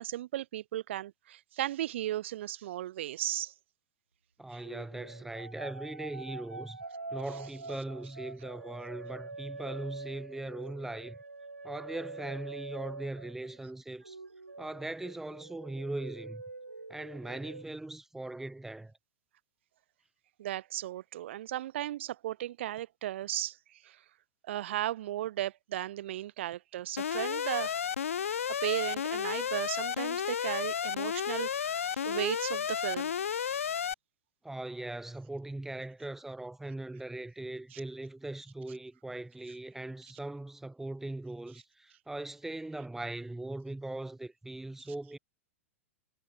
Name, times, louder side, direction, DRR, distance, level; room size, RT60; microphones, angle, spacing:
voice 1, 0.0-3.5 4.5-4.6 20.4-24.0 24.4-27.8 28.2-33.7 37.7-37.8, right 13 dB, 55° right, 0.7 m, -36 dB
voice 2, 4.4-6.8 7.1-11.2 11.6-14.2 14.6-16.4 16.9-18.9 34.4-45.2, right 2 dB, 5° right, 1.0 m, -40 dB
sound 1, 4.6-13.7 14.0-17.6, right 3 dB, 85° right, 1.2 m, -45 dB
Alarm, 27.0-33.9, left 8 dB, 75° left, 0.4 m, -32 dB
figure-of-eight pair, 100°, 7 cm